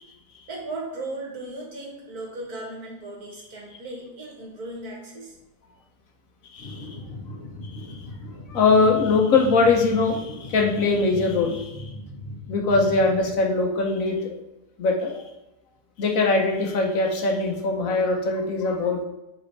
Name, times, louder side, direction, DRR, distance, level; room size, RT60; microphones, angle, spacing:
voice 1, 0.5-5.4, right 2 dB, 80° right, -2 dB, 2.1 m, -36 dB
voice 2, 6.5-7.0 7.8-8.0 8.5-11.9 12.5-14.4 14.8-15.2 16.0-19.1, left 3 dB, 65° left, 2 dB, 1.2 m, -22 dB
sound 1, 6.6-13.4, left 1 dB, 35° left, 1.6 m, -38 dB
5.2 x 4.3 x 4.5 m, 0.98 s
omnidirectional pair, 1.6 m